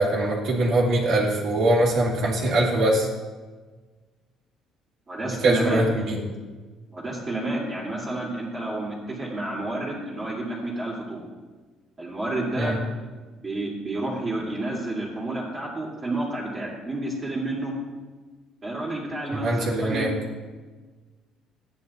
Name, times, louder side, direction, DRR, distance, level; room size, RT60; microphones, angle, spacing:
voice 1, 0.0-3.1 5.2-6.2 12.5-12.8 19.3-20.1, right 1 dB, 60° right, -4 dB, 2.3 m, -22 dB
voice 2, 5.1-5.9 6.9-11.2 12.0-12.7 13.3-17.7 18.6-20.1, right 1 dB, 25° right, -6 dB, 2.6 m, -30 dB
12.0 x 9.7 x 4.3 m, 1.4 s
cardioid pair, 130°, 0 cm